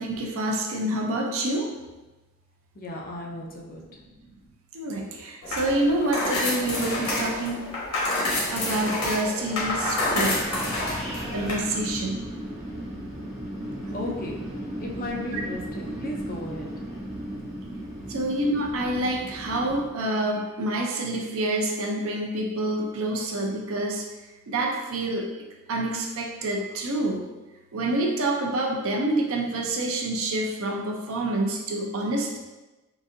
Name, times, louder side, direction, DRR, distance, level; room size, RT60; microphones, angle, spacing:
voice 1, 0.0-1.7 4.7-7.6 8.5-10.4 11.1-12.2 18.1-24.0 24.5-25.3 25.7-27.2 27.7-32.4, right 1 dB, 65° right, 1 dB, 0.5 m, -27 dB
voice 2, 2.7-4.0 13.9-16.9, left 1 dB, 40° left, -1 dB, 0.5 m, -36 dB
sound 1, 5.4-11.5, left 1 dB, 75° left, 1.2 m, -28 dB
Wind, 9.6-19.9, right 1 dB, 30° right, 1.3 m, -36 dB
3.8 x 2.6 x 2.5 m, 1.1 s
head